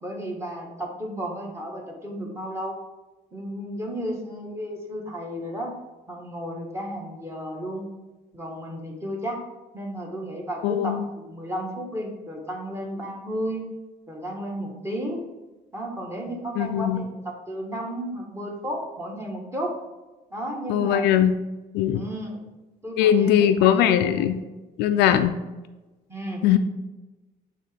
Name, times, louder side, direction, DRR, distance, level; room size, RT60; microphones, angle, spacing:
voice 1, 0.0-2.8 3.3-5.7 6.1-7.9 8.3-9.4 9.7-13.6 14.1-15.2 15.7-19.7 20.3-21.0 21.9-22.4 22.8-24.3 26.1-26.4, equal, 15° right, -1 dB, 1.5 m, -33 dB
voice 2, 10.6-11.0 16.6-17.0 20.7-21.3 21.7-22.0 23.0-24.4 24.8-25.4 26.4-26.6, left 10 dB, 90° left, 9 dB, 0.4 m, -20 dB
6.6 x 3.1 x 5.1 m, 1.1 s
cardioid pair, 110°, 17 cm